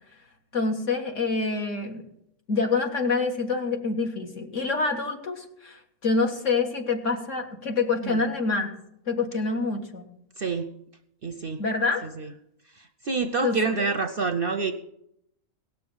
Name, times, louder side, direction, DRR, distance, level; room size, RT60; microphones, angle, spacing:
voice 1, 0.5-2.0 2.5-8.7 9.1-10.0 11.6-12.0 13.4-13.8, left 4 dB, 60° left, 2 dB, 2.0 m, -26 dB
voice 2, 10.4-10.7 11.2-11.6 12.2-12.3 12.8-14.7, right 4 dB, 50° right, 7 dB, 0.7 m, -27 dB
17.5 x 6.8 x 7.2 m, 0.76 s
omnidirectional pair, 1.5 m